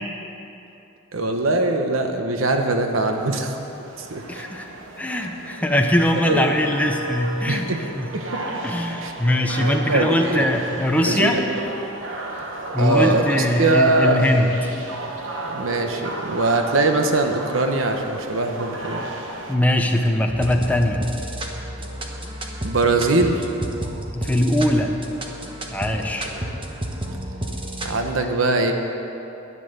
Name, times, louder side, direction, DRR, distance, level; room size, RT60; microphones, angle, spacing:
voice 1, 1.1-3.5 4.0-4.2 6.3-6.4 7.5-7.8 8.1-8.3 9.0-9.1 9.6-10.4 11.1-11.4 12.8-14.2 15.4-19.0 22.6-23.5 26.3-26.4 27.8-28.7, right 2 dB, 90° right, 4 dB, 1.1 m, -21 dB
sound 1, 3.1-19.5, right 2 dB, 70° right, 1.2 m, -34 dB
voice 2, 4.3-4.7 5.0-7.7 7.9-8.1 8.6-11.4 12.7-14.5 19.5-21.0 24.1-24.9 25.7-26.3, left 1 dB, 10° left, 2 dB, 0.9 m, -21 dB
sound 2, 20.3-28.0, right 1 dB, 25° right, 1.1 m, -31 dB
11.0 x 10.0 x 6.8 m, 2.9 s
head